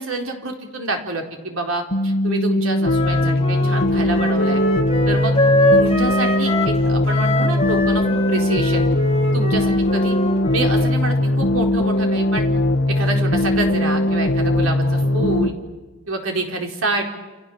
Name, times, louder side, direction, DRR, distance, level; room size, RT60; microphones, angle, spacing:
voice 1, 0.0-4.6 5.0-5.3 5.7-8.9 9.3-10.2 10.5-12.5 12.9-15.5 16.1-17.0, right 2 dB, 85° right, 2 dB, 4.2 m, -27 dB
sound 1, 1.9-15.5, left 1 dB, 60° left, 1.9 m, -19 dB
Wind instrument woodwind instrument, 2.8-6.8 7.0-11.0, left 1 dB, 30° left, 3.7 m, -23 dB
29.5 x 27.5 x 7.3 m, 1.3 s
head